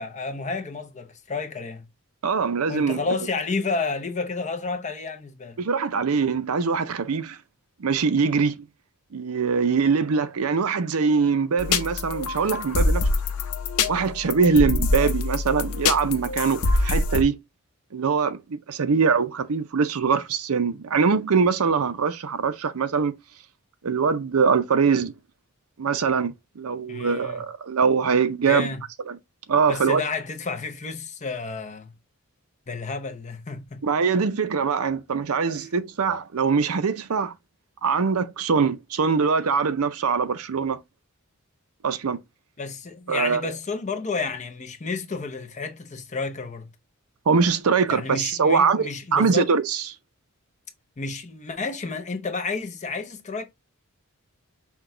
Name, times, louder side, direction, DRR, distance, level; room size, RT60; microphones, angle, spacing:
voice 1, 0.0-1.9 2.7-5.6 26.9-27.4 28.5-28.8 29.7-31.9 32.7-33.8 42.6-46.7 47.9-49.5 51.0-53.4, left 4 dB, 35° left, 0.7 m, -31 dB
voice 2, 2.2-3.1 5.6-7.4 7.8-8.6 9.1-13.0 13.9-17.4 17.9-23.1 23.8-25.1 25.8-28.7 29.1-29.2 29.5-30.0 33.8-37.3 37.8-40.8 41.8-42.2 43.1-43.5 47.3-49.9, right 5 dB, 75° right, 0.5 m, -23 dB
sound 1, 11.6-17.2, left 3 dB, 90° left, 0.7 m, -25 dB
5.9 x 2.3 x 3.7 m
head